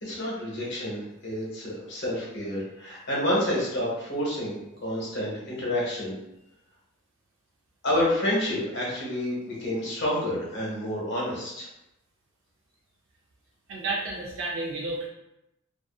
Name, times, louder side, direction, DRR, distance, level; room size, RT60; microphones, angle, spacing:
voice 1, 0.0-6.2 7.8-11.7, left 1 dB, 60° left, -5 dB, 0.9 m, -29 dB
voice 2, 13.7-15.1, right 2 dB, 70° right, -3 dB, 0.4 m, -31 dB
2.5 x 2.4 x 2.3 m, 0.87 s
head